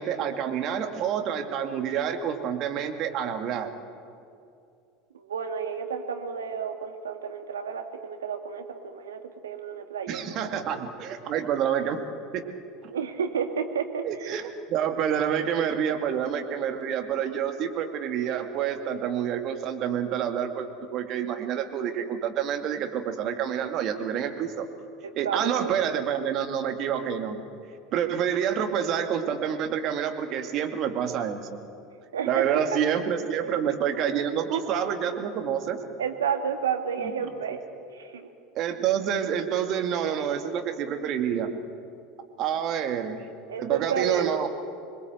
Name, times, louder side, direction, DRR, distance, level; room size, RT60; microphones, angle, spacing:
voice 1, 0.0-3.7 10.1-12.0 12.3-12.4 12.8-12.9 14.0-24.7 25.2-27.4 27.9-31.6 32.2-35.8 37.0-37.6 38.6-41.5 42.4-43.3 43.6-44.5, right 8 dB, 45° right, 6 dB, 2.3 m, -28 dB
voice 2, 5.1-10.3 10.5-10.6 12.9-14.3 25.0-25.7 32.1-32.6 33.4-33.6 36.0-37.6 37.9-38.3 43.5-44.5, right 7 dB, 75° right, 5 dB, 2.1 m, -31 dB
26.0 x 21.5 x 8.0 m, 2.5 s
figure-of-eight pair, 75°, 0 cm